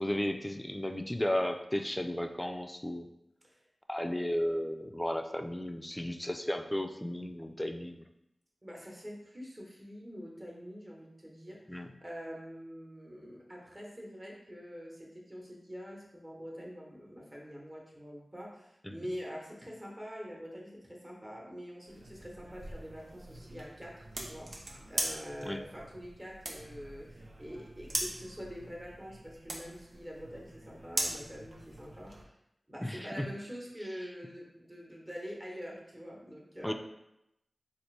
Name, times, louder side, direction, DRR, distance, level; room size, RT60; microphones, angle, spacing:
voice 1, 0.0-3.1 3.9-8.0 11.7-11.9 18.8-18.9 25.4-25.6 32.8-33.3 36.6-36.7, left 1 dB, 10° left, 6 dB, 0.3 m, -34 dB
voice 2, 8.6-11.6 12.0-32.3 32.7-36.7, equal, 25° right, -2 dB, 1.0 m, -45 dB
sound 1, 21.9-32.2, right 1 dB, 70° right, 0.7 m, -41 dB
4.2 x 2.5 x 3.2 m, 0.85 s
wide cardioid pair, 65°, 0 cm